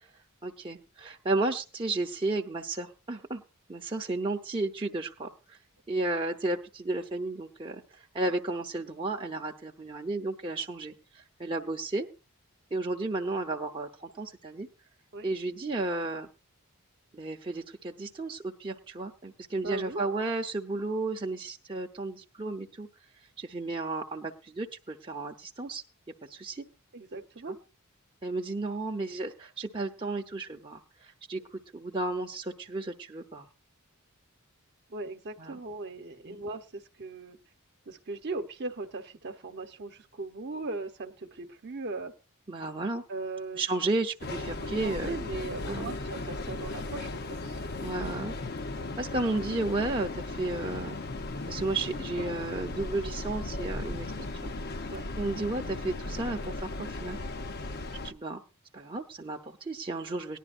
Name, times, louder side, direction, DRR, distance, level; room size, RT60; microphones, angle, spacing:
voice 1, 0.4-3.4 3.7-5.3 5.9-7.8 8.1-10.9 11.4-12.1 12.7-14.7 15.2-16.3 17.1-22.9 23.4-25.8 26.3-26.6 28.2-31.4 31.7-33.5 35.4-35.6 36.3-36.4 42.5-43.0 43.5-45.1 45.7-45.9 47.8-48.3 49.0-51.0 51.5-54.1 54.4-54.5 55.2-57.2 58.0-58.4 58.7-60.4, right 2 dB, 25° right, 1 dB, 0.8 m, -33 dB
voice 2, 19.6-20.0 26.9-27.6 34.9-37.4 37.9-42.1 43.1-43.6 44.6-47.6 54.9-55.0, right 3 dB, 50° right, 6 dB, 1.0 m, -38 dB
Train, 44.2-58.1, left 2 dB, 50° left, 0.7 m, -36 dB
18.5 x 11.0 x 2.5 m, 0.30 s
head